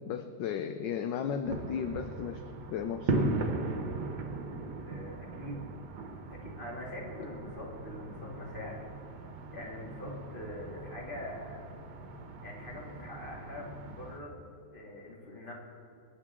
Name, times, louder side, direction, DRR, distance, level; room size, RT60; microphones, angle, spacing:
voice 1, 0.1-2.4 2.7-3.3, left 7 dB, 70° left, 8 dB, 1.3 m, -34 dB
sound 1, 1.4-14.2, right 3 dB, 60° right, 1.6 m, -38 dB
voice 2, 4.8-5.6 6.3-8.9 9.5-11.6 12.4-14.4 14.7-15.5, left 1 dB, 25° left, -2 dB, 2.6 m, -43 dB
27.0 x 9.7 x 3.7 m, 2.9 s
omnidirectional pair, 2.1 m